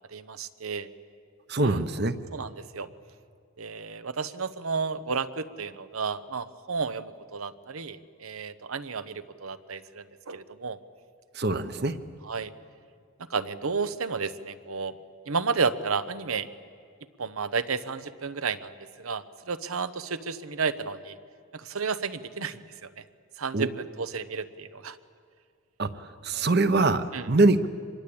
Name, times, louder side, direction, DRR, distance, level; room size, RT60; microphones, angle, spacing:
voice 1, 0.1-0.9 1.6-1.8 2.3-2.9 3.6-10.8 12.2-12.5 13.3-14.9 15.3-16.5 17.2-18.7 19.0-21.2 21.5-23.0 23.4-25.0 26.3-26.5 27.1-27.3, right 5 dB, 85° right, 13 dB, 1.0 m, -32 dB
voice 2, 1.5-2.1 11.3-11.9 23.5-23.7 25.8-25.9 26.2-27.7, right 2 dB, 50° right, 11 dB, 1.0 m, -23 dB
25.0 x 22.0 x 8.7 m, 2.2 s
head